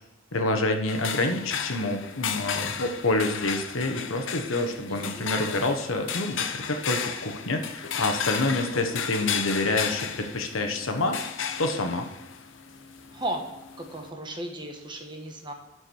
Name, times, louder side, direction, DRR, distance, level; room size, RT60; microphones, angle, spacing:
voice 1, 0.3-11.2 11.6-12.1, left 2 dB, 80° left, 5 dB, 1.3 m, -27 dB
sound 1, 0.9-14.1, left 7 dB, 65° left, 0.8 m, -34 dB
voice 2, 4.9-5.5 8.4-8.7 13.1-13.4 13.8-15.5, right 1 dB, 25° right, 2 dB, 1.4 m, -36 dB
12.5 x 4.8 x 4.6 m, 1.0 s
head